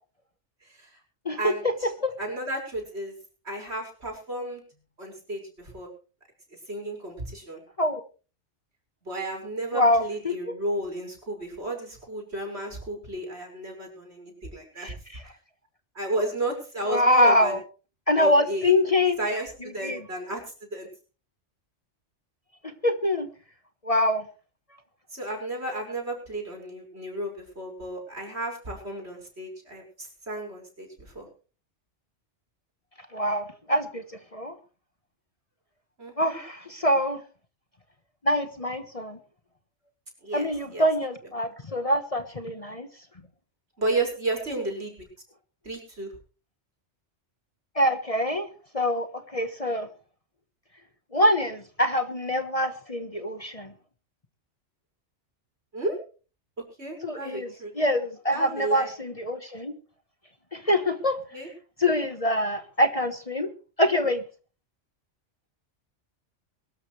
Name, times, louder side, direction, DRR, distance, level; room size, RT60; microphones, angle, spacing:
voice 1, 1.4-1.9 2.2-3.2 3.4-4.6 5.0-5.9 6.7-7.6 9.0-14.9 15.9-17.6 18.1-18.7 19.2-20.9 25.1-31.3 36.0-36.4 40.2-40.8 43.8-45.1 45.6-46.1 55.7-56.0 56.6-57.7 58.3-58.9 61.3-61.5, right 2 dB, 65° right, 1 dB, 6.1 m, -33 dB
voice 2, 9.7-10.3 14.8-14.9 16.9-17.6 18.1-19.2 19.8-20.0 22.8-23.3 23.8-24.2 33.1-34.0 34.3-34.5 36.2-37.2 38.2-39.2 40.3-42.9 47.8-48.5 48.7-49.9 51.1-53.7 57.0-57.5 57.8-59.7 60.5-61.2 61.8-63.5 63.8-64.2, left 1 dB, 30° left, 9 dB, 1.3 m, -24 dB
22.5 x 13.5 x 3.3 m, 0.36 s
omnidirectional pair, 1.2 m